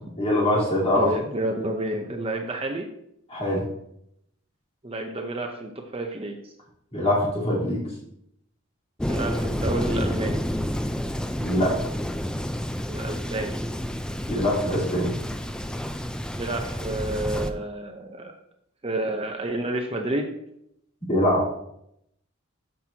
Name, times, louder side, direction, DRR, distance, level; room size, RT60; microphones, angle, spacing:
voice 1, 0.2-1.1 3.3-3.7 6.9-7.8 11.4-11.8 14.3-15.1 21.1-21.5, left 1 dB, 30° left, -7 dB, 3.5 m, -23 dB
voice 2, 1.0-2.9 4.8-6.5 9.1-10.4 12.9-13.5 16.3-18.3 18.8-20.3, right 1 dB, 30° right, 3 dB, 0.7 m, -30 dB
Thunder, 9.0-17.5, equal, 5° left, 0.4 m, -29 dB
13.0 x 6.0 x 2.8 m, 0.76 s
head